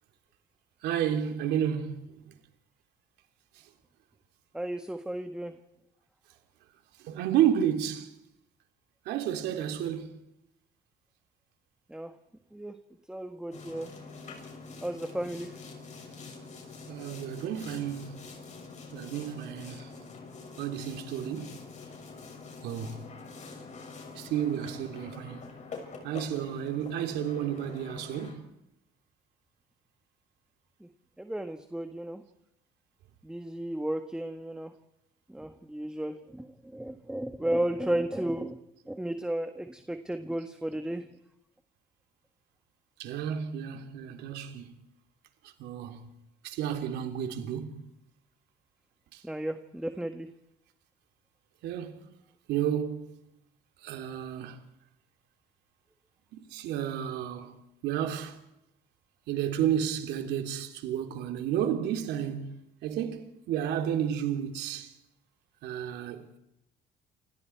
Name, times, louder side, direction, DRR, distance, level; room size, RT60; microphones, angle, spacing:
voice 1, 0.8-2.3 7.0-8.1 9.0-10.2 16.9-18.3 18.9-19.9 20.6-21.6 22.6-23.0 24.1-25.6 26.0-28.5 43.0-44.7 45.6-46.1 46.4-47.8 49.1-49.2 51.6-52.0 52.5-53.1 53.8-54.6 56.3-58.4 59.3-62.5 62.8-64.9 65.6-66.4, right 9 dB, 85° right, 3.3 m, -31 dB
voice 2, 4.5-5.6 11.9-12.1 12.5-12.8 13.1-13.9 14.8-15.5 30.8-30.9 31.2-32.2 33.2-34.7 35.3-38.6 38.8-41.1 49.2-50.3, right 1 dB, 5° right, 1.5 m, -34 dB
Boat Water vehicle, 13.5-28.3, left 4 dB, 45° left, 6.7 m, -45 dB
28.5 x 26.5 x 4.7 m
cardioid pair, 110°, 17 cm